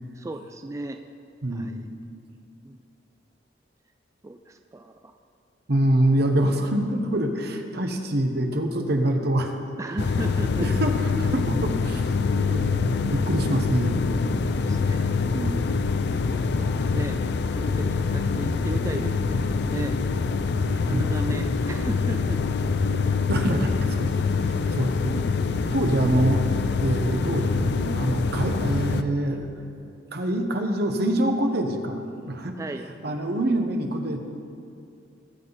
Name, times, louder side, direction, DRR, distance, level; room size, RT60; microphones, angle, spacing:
voice 1, 0.1-1.0 1.5-1.8 2.6-2.8 4.2-5.1 9.8-10.7 14.5-16.0 16.2-20.0 20.7-22.4 32.6-33.2, right 2 dB, 15° right, 6 dB, 0.3 m, -36 dB
voice 2, 1.4-1.8 5.7-9.5 10.6-12.1 12.4-14.0 20.9-21.1 23.3-24.1 24.4-25.2 25.7-29.5 30.1-32.6 33.0-34.2, right 1 dB, 60° right, 4 dB, 1.1 m, -25 dB
sound 1, 10.0-29.0, left 4 dB, 65° left, 0.5 m, -25 dB
19.0 x 7.8 x 4.0 m, 2.4 s
head